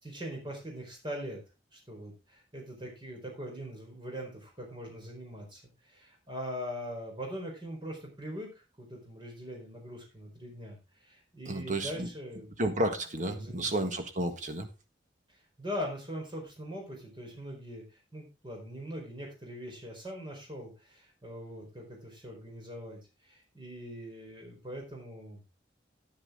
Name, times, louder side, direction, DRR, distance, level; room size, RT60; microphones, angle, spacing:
voice 1, 0.0-1.4 1.7-8.5 8.8-12.5 13.3-13.7 15.6-25.4, equal, 25° right, 0 dB, 4.6 m, -42 dB
voice 2, 11.5-12.1 12.6-14.7, right 1 dB, 40° right, 6 dB, 1.6 m, -31 dB
10.0 x 10.0 x 3.9 m, 0.27 s
head